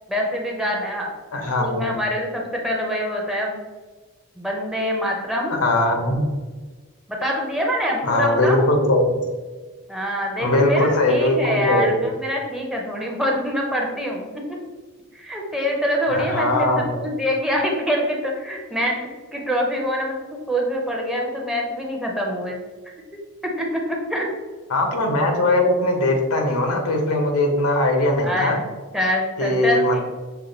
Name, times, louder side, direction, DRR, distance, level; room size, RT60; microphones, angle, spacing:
voice 1, 0.1-1.1 1.6-3.6 4.4-5.5 7.1-8.7 9.9-14.3 15.1-22.6 23.6-24.3 28.2-28.6 28.9-30.0, equal, 5° right, -1 dB, 0.6 m, -25 dB
voice 2, 1.3-1.9 5.6-6.2 8.0-9.2 10.4-12.0 16.1-16.9 24.7-28.6 29.4-30.0, left 1 dB, 80° left, 3 dB, 0.9 m, -20 dB
5.7 x 2.3 x 3.9 m, 1.3 s
head